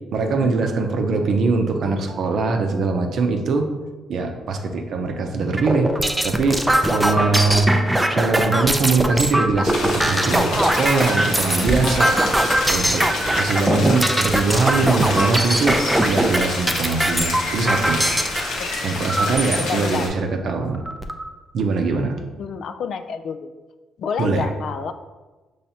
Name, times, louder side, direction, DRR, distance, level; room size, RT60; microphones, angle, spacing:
voice 1, 0.1-3.7 4.1-5.9 6.2-18.0 18.3-18.6 18.8-20.8 21.5-22.2 24.2-24.5, right 4 dB, 65° right, 4 dB, 0.6 m, -22 dB
sound 1, 5.6-18.4 19.1-19.6 20.2-20.3 20.6-21.2, right 1 dB, 10° right, 0.4 m, -21 dB
voice 2, 7.1-7.4 18.6-18.7 19.2-20.1 22.4-23.5 24.0-24.9, left 6 dB, 65° left, 9 dB, 0.3 m, -29 dB
sound 2, 9.6-20.1, left 2 dB, 90° left, 1.0 m, -28 dB
5.7 x 3.1 x 2.8 m, 1.2 s
cardioid pair, 90°, 0 cm